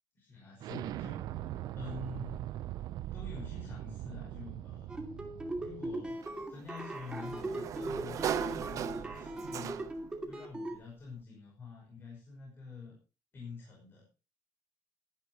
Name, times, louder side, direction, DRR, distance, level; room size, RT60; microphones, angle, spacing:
voice 1, 0.2-1.2 1.7-2.4 3.1-5.0 5.6-6.2 6.5-9.8 10.3-13.0 13.3-14.1, left 4 dB, 35° left, -2 dB, 5.3 m, -47 dB
Explosion, 0.6-6.1, right 13 dB, 75° right, 0.6 m, -41 dB
sound 1, 4.9-10.8, right 1 dB, 15° right, 2.4 m, -39 dB
Sliding door, 6.2-10.2, right 10 dB, 55° right, 0.9 m, -38 dB
17.0 x 11.0 x 3.0 m, 0.31 s
cardioid pair, 160°, 7 cm